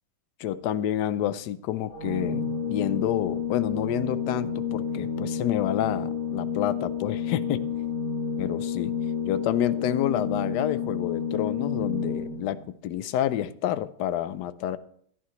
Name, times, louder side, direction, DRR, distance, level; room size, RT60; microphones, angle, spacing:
voice 1, 0.4-7.7 8.4-8.9 9.3-14.8, left 11 dB, 70° left, 1.0 m, -29 dB
Organ, 1.9-12.6, left 7 dB, 70° right, 7.4 m, -30 dB
15.5 x 11.0 x 3.1 m
omnidirectional pair, 2.2 m